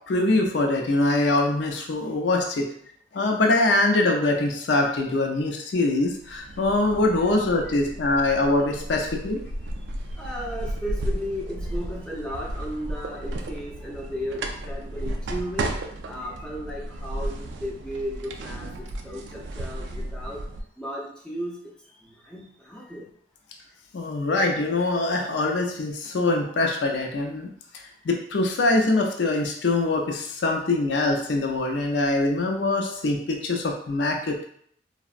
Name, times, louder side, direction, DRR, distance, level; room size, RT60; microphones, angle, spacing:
voice 1, 0.1-2.7 3.1-9.4 23.9-27.5 28.0-34.5, left 2 dB, 85° left, 1 dB, 0.4 m, -23 dB
sound 1, 6.1-20.6, right 1 dB, 90° right, 0.3 m, -34 dB
voice 2, 10.2-15.7 16.1-20.4 20.8-21.6 22.0-23.1, equal, 5° left, -4 dB, 0.4 m, -35 dB
3.4 x 2.0 x 2.4 m, 0.65 s
head